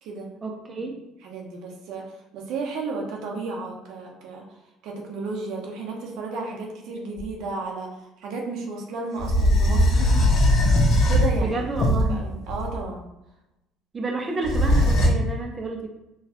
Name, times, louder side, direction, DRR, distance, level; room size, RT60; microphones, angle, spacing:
voice 1, 0.4-1.0 11.4-12.2 13.9-15.9, right 3 dB, 30° right, 1 dB, 0.6 m, -30 dB
voice 2, 1.2-4.4 4.8-10.1 11.1-11.6 12.0-13.1, right 3 dB, 70° right, 0 dB, 0.7 m, -33 dB
sound 1, 7.2-7.3 9.2-12.8 14.4-15.1, left 1 dB, 60° left, 0.9 m, -19 dB
4.0 x 2.3 x 2.9 m, 0.94 s
supercardioid pair, 75°, 0 cm